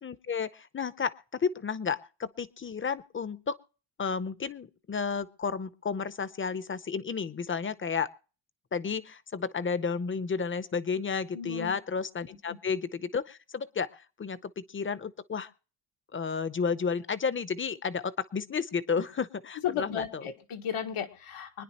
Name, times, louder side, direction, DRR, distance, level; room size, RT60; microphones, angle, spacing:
voice 1, 0.0-3.6 4.0-8.1 8.7-15.5 16.1-20.2, left 5 dB, 25° left, 15 dB, 0.7 m, -32 dB
voice 2, 11.3-11.7 12.5-12.6 18.9-19.0 19.6-21.6, left 8 dB, 90° left, 4 dB, 1.6 m, -34 dB
25.0 x 10.0 x 2.9 m, 0.37 s
cardioid pair, 125°, 49 cm